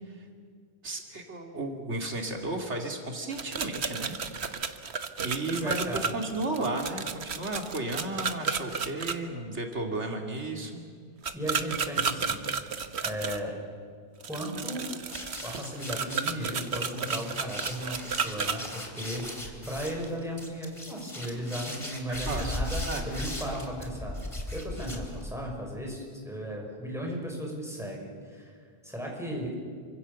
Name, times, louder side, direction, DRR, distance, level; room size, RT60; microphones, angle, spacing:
voice 1, 0.8-4.2 5.2-10.8 22.1-22.5 22.9-23.1, right 2 dB, 90° right, 3 dB, 2.7 m, -33 dB
sound 1, 3.3-9.1 11.2-13.4 14.2-18.6, right 6 dB, 70° right, 1.4 m, -32 dB
voice 2, 5.4-6.1 11.3-12.5 13.0-13.5 14.3-14.9 15.4-24.2 24.5-28.5 28.8-29.6, equal, ahead, -1 dB, 6.2 m, -36 dB
sound 2, 15.1-25.5, left 1 dB, 30° left, 3.2 m, -38 dB
27.5 x 25.0 x 7.0 m, 2.1 s
omnidirectional pair, 1.1 m